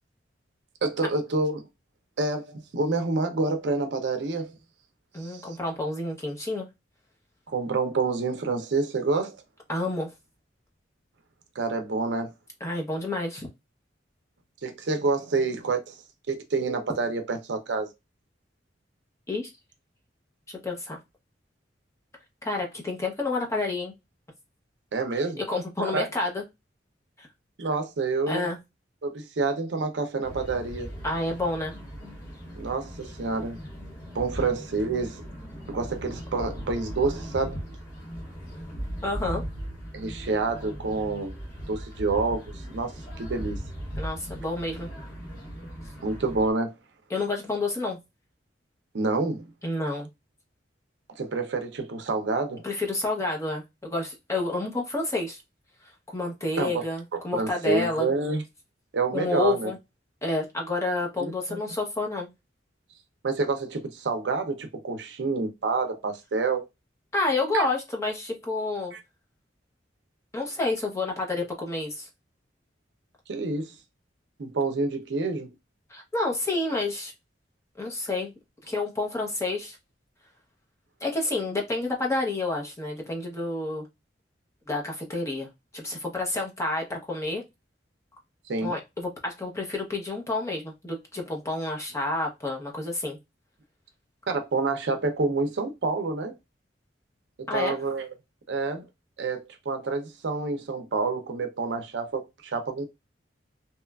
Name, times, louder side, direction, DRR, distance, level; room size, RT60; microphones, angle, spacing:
voice 1, 0.8-1.6 2.2-4.5 5.2-5.5 7.5-9.4 11.6-12.3 14.6-15.9 16.3-17.9 24.9-25.4 25.8-26.1 27.6-28.5 29.0-30.9 32.5-33.6 34.1-35.2 35.7-37.6 39.9-41.4 41.7-43.6 46.0-46.7 48.9-49.5 51.1-52.6 56.6-56.8 57.1-58.4 58.9-59.7 61.2-61.6 63.2-66.7 67.5-67.6 68.9-69.0 73.3-73.7 74.4-75.5 88.5-88.7 94.3-96.3 97.4-98.1 98.5-98.8 99.2-102.9, right 3 dB, 70° right, 0.5 m, -28 dB
voice 2, 5.1-6.7 9.7-10.1 12.6-13.5 19.3-19.5 20.5-21.0 22.4-23.9 25.4-26.4 27.2-27.3 28.3-28.6 31.0-31.7 39.0-39.4 44.0-44.9 47.1-48.0 49.6-50.1 52.6-55.4 56.1-58.1 59.1-59.8 60.2-62.3 67.1-69.0 70.3-72.1 75.9-77.1 77.8-78.3 78.7-79.8 81.0-83.9 84.7-85.5 85.7-87.4 88.6-93.2 97.5-97.8, left 2 dB, 15° left, 0.7 m, -29 dB
sound 1, 30.2-46.5, equal, 55° left, 0.9 m, -38 dB
2.9 x 2.3 x 2.2 m
head